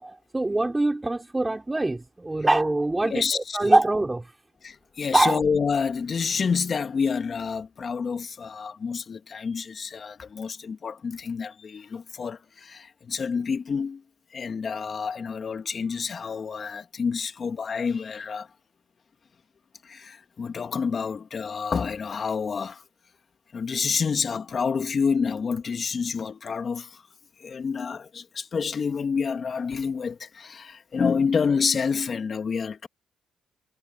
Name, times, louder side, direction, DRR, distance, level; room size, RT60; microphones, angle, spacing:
voice 1, 0.0-4.2 5.1-5.4, right 2 dB, 15° right, 3.5 m, -23 dB
voice 2, 3.0-3.7 4.6-14.0 14.3-18.5 19.8-22.8 23.5-27.0 27.4-32.9, left 5 dB, 45° left, 2.2 m, -28 dB
cardioid pair, 90°, 0 cm